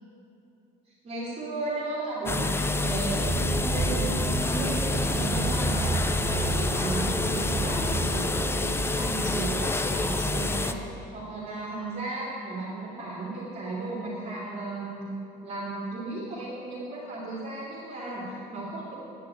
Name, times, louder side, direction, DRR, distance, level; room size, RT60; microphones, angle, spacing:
voice 1, 1.0-3.2 3.5-15.1 15.4-18.9, right 2 dB, 40° right, -8 dB, 2.7 m, -35 dB
sound 1, 2.3-10.7, left 2 dB, 15° left, 0.4 m, -28 dB
sound 2, 2.9-8.2, right 3 dB, 60° right, 2.5 m, -31 dB
10.0 x 6.0 x 8.4 m, 2.8 s
cardioid pair, 110°, 17 cm